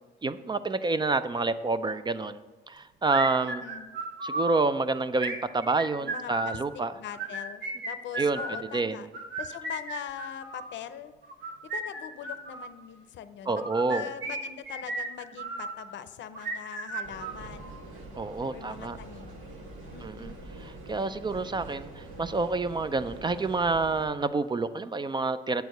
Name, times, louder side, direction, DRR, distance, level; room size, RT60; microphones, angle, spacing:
voice 1, 0.2-2.4 2.7-3.6 4.2-6.9 8.2-8.4 8.7-9.0 13.5-14.1 18.1-19.0 20.0-20.3 20.6-25.7, right 3 dB, 25° right, 12 dB, 0.4 m, -28 dB
sound 1, 3.1-4.6 5.2-6.6 7.1-8.6 9.1-10.7 11.3-12.7 13.5-15.8 16.3-17.8, right 2 dB, 65° right, 1.3 m, -35 dB
voice 2, 3.4-3.9 6.0-6.6 6.9-9.1 9.4-11.1 11.6-17.7 18.5-19.4 19.9-20.4, left 9 dB, 65° left, 12 dB, 0.6 m, -42 dB
sound 2, 17.0-24.1, right 1 dB, 85° right, 1.4 m, -44 dB
8.1 x 4.6 x 6.5 m, 1.2 s
cardioid pair, 90°, 20 cm